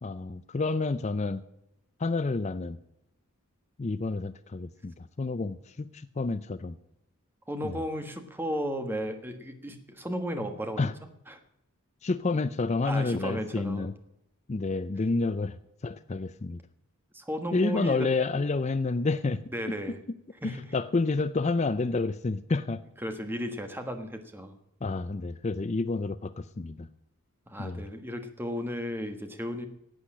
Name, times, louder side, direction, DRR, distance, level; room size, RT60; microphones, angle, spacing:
voice 1, 0.0-1.4 2.0-2.8 3.8-6.8 7.6-7.8 10.8-10.9 12.0-13.9 14.5-16.6 17.5-19.4 20.4-22.8 24.8-26.9 27.6-27.8, left 3 dB, 30° left, 13 dB, 0.4 m, -29 dB
voice 2, 7.5-10.9 11.3-11.4 12.8-13.9 17.1-18.1 19.5-20.0 20.4-20.7 23.0-24.6 27.5-29.7, equal, 10° right, 6 dB, 1.3 m, -34 dB
11.5 x 8.4 x 8.6 m, 0.82 s
head